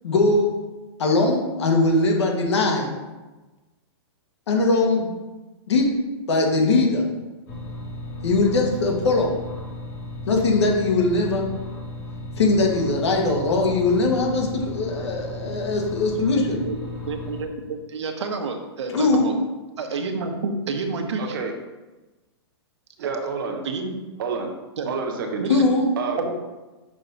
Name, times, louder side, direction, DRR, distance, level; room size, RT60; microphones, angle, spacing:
voice 1, 0.0-0.5 1.0-2.9 4.5-5.1 5.7-5.9 6.3-7.0 8.2-9.4 10.3-11.4 12.4-16.6 18.9-19.3 25.5-25.8, left 3 dB, 80° left, 1 dB, 1.6 m, -20 dB
sound 1, 7.5-17.4, left 1 dB, 40° left, 1.7 m, -35 dB
voice 2, 16.6-19.4 19.8-21.4 23.0-23.1 23.6-23.9 24.8-24.9 25.4-25.7 26.2-26.3, right 4 dB, 90° right, 4 dB, 1.0 m, -29 dB
voice 3, 21.2-21.5 23.0-23.6 24.2-24.5 24.9-25.4 26.0-26.2, right 5 dB, 50° right, 2 dB, 1.0 m, -28 dB
6.2 x 4.5 x 4.0 m, 1.2 s
hypercardioid pair, 170°, 14 cm